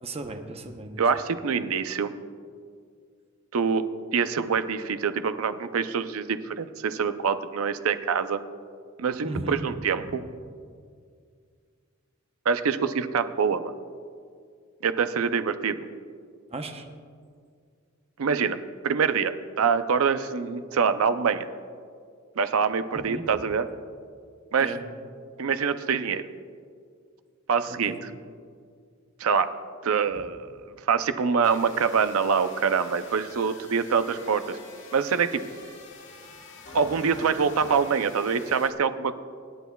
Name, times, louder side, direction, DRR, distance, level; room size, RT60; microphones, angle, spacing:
voice 1, 0.0-1.0 9.2-9.6 16.5-16.9 22.9-23.2 24.6-24.8 27.7-28.0, right 2 dB, 30° right, 5 dB, 0.8 m, -35 dB
voice 2, 1.0-2.1 3.5-3.9 4.1-8.4 9.0-10.2 12.5-13.7 14.8-15.8 18.2-18.6 18.8-21.5 22.4-23.7 24.5-24.7 25.4-26.3 27.5-28.1 29.2-29.5 29.8-30.5 30.9-34.6 34.9-35.4 36.7-39.2, right 6 dB, 85° right, 11 dB, 0.5 m, -25 dB
sound 1, 31.4-38.7, left 3 dB, 60° left, 1.5 m, -46 dB
25.0 x 9.2 x 2.3 m, 2.1 s
head